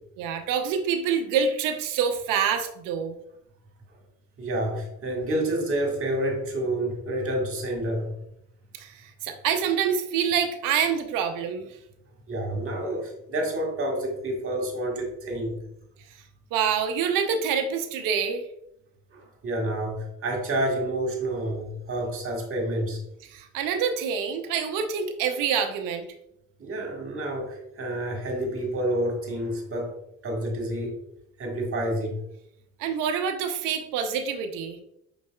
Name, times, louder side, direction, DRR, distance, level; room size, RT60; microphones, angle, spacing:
voice 1, 0.2-3.1 8.7-11.7 16.5-18.5 23.3-26.1 32.8-34.8, right 7 dB, 65° right, 6 dB, 0.7 m, -26 dB
voice 2, 4.4-8.1 12.3-15.5 19.1-23.0 26.6-30.0 30.2-30.9 31.4-32.2, right 1 dB, 40° right, 2 dB, 1.6 m, -29 dB
5.3 x 4.0 x 2.3 m, 0.78 s
supercardioid pair, 80°, 34 cm